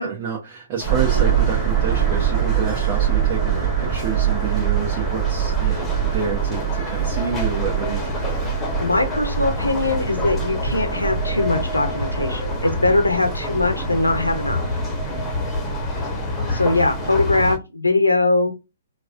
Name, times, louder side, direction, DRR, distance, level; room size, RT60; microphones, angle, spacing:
voice 1, 0.0-8.5, right 6 dB, 35° right, 1.0 m, -29 dB
sound 1, 0.8-17.6, left 1 dB, 5° left, 1.1 m, -28 dB
sound 2, 0.8-16.4, right 10 dB, 20° right, 1.3 m, -25 dB
voice 2, 8.8-14.6 16.5-18.5, left 2 dB, 85° left, 0.7 m, -21 dB
4.7 x 2.2 x 2.5 m
figure-of-eight pair, 120°, 0 cm